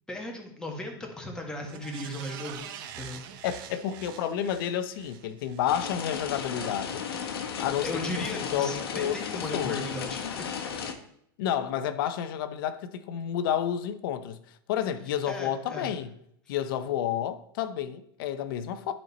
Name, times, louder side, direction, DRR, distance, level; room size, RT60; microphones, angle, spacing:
voice 1, 0.1-2.7 3.0-3.2 7.6-10.5 15.3-15.9, left 1 dB, 5° left, 1.6 m, -36 dB
sound 1, 1.6-6.2 6.6-6.7, right 9 dB, 60° right, 0.8 m, -45 dB
voice 2, 3.4-7.1 7.6-9.8 11.4-14.4 14.7-16.1 16.5-18.9, left 10 dB, 65° left, 0.7 m, -30 dB
sound 2, 5.7-10.9, left 7 dB, 85° left, 1.0 m, -35 dB
9.3 x 4.4 x 4.2 m
supercardioid pair, 130°, 12 cm